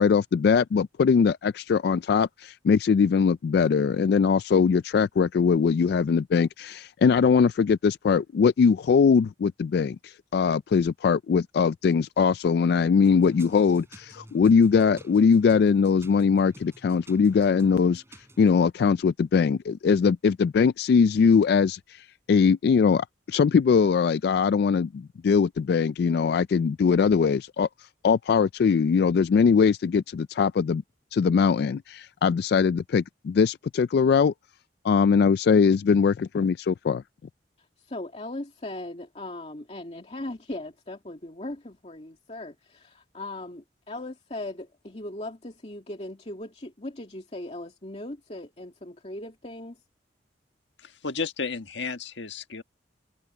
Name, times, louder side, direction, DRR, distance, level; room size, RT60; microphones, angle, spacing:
voice 1, 0.0-18.0 18.4-27.7 28.0-30.8 31.1-34.3 34.8-37.0, left 6 dB, 60° left, 0.3 m, -21 dB
sound 1, 13.0-18.6, right 1 dB, 15° right, 5.9 m, -50 dB
voice 2, 37.8-49.8, left 1 dB, 35° left, 2.4 m, -38 dB
voice 3, 50.8-52.6, left 4 dB, 90° left, 1.6 m, -33 dB
head